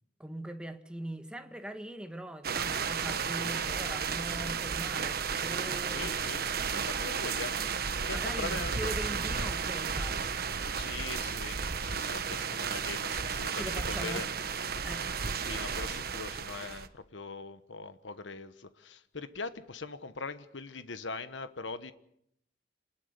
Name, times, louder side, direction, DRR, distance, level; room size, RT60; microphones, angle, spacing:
voice 1, 0.2-6.2 8.1-10.4 13.5-14.5 14.8-15.2, right 1 dB, 5° right, 1.7 m, -41 dB
sound 1, 2.4-16.9, right 6 dB, 55° right, 1.3 m, -33 dB
voice 2, 5.9-8.9 10.7-14.3 15.4-21.9, left 4 dB, 80° left, 1.2 m, -41 dB
27.0 x 20.5 x 6.8 m
head